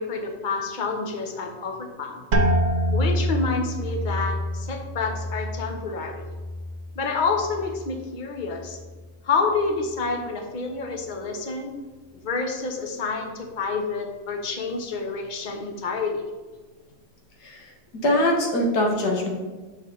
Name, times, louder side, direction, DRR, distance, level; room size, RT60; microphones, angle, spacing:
voice 1, 0.0-2.2 2.9-6.3 6.9-8.8 9.2-11.7 12.2-16.2, left 4 dB, 40° left, 3 dB, 0.8 m, -28 dB
sound 1, 2.3-7.9 8.3-9.0 9.5-9.9, equal, 65° right, 0.4 m, -27 dB
voice 2, 17.4-19.3, left 1 dB, 75° left, 0 dB, 1.9 m, -23 dB
7.2 x 6.2 x 3.9 m, 1.3 s
omnidirectional pair, 1.8 m